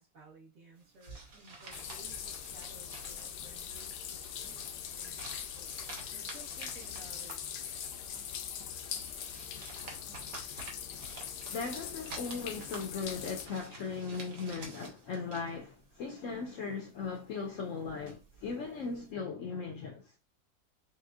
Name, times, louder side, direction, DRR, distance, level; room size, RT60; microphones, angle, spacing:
voice 1, 0.0-7.4 9.8-9.9, right 2 dB, 60° right, 1.6 m, -57 dB
sound 1, 0.8-16.7 16.9-19.1, right 3 dB, 85° right, 1.6 m, -51 dB
sound 2, 1.7-13.5, left 8 dB, 90° left, 1.2 m, -42 dB
voice 2, 11.4-20.1, left 5 dB, 70° left, 0.8 m, -38 dB
5.9 x 2.2 x 2.4 m
omnidirectional pair, 1.7 m